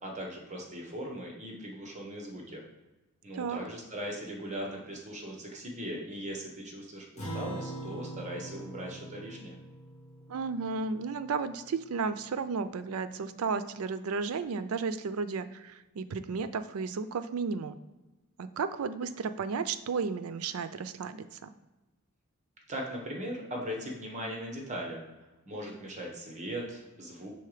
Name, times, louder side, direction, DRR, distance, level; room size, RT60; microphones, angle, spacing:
voice 1, 0.0-2.6 3.2-9.6 22.7-25.0 25.5-27.3, equal, 35° right, 0 dB, 1.1 m, -39 dB
Acoustic guitar, 7.2-11.9, right 1 dB, 30° left, 1.9 m, -43 dB
voice 2, 10.3-17.8 18.4-21.5, right 5 dB, 80° right, 12 dB, 0.4 m, -33 dB
5.6 x 3.8 x 4.9 m, 1.1 s
head